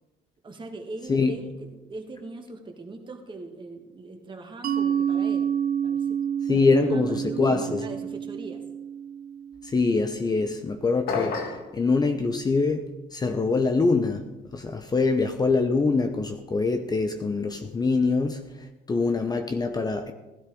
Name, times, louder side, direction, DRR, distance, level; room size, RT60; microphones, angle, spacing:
voice 1, 0.4-5.5 5.8-6.2 6.5-8.6, right 2 dB, 30° right, 2.0 m, -40 dB
Mallet percussion, 4.6-10.0, right 8 dB, 55° right, 0.9 m, -29 dB
voice 2, 6.5-7.8 9.6-12.8 13.1-20.1, left 4 dB, 25° left, 0.9 m, -24 dB
sound 1, 11.1-11.7, left 4 dB, 65° left, 1.9 m, -29 dB
16.5 x 12.0 x 3.9 m
cardioid pair, 110°, 17 cm